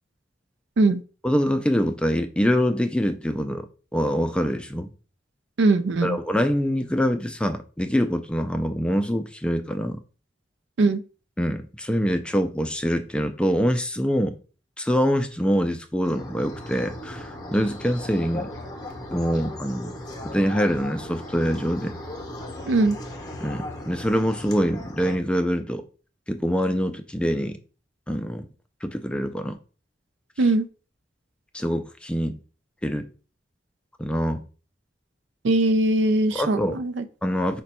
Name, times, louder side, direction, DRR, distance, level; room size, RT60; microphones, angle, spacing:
voice 1, 1.2-4.9 6.0-10.0 11.4-14.4 14.8-18.5 19.1-20.0 20.2-22.0 23.4-25.8 26.3-27.6 28.1-28.5 28.8-29.6 31.5-32.4 32.8-33.1 34.0-34.4 36.3-36.8 37.2-37.6, equal, 5° left, 0.3 m, -24 dB
voice 2, 5.6-6.2 10.8-11.0 22.7-23.0 30.4-30.7 35.4-37.0, right 2 dB, 80° right, 0.4 m, -20 dB
sound 1, 16.0-25.2, left 1 dB, 20° left, 0.7 m, -37 dB
5.0 x 2.2 x 4.2 m
head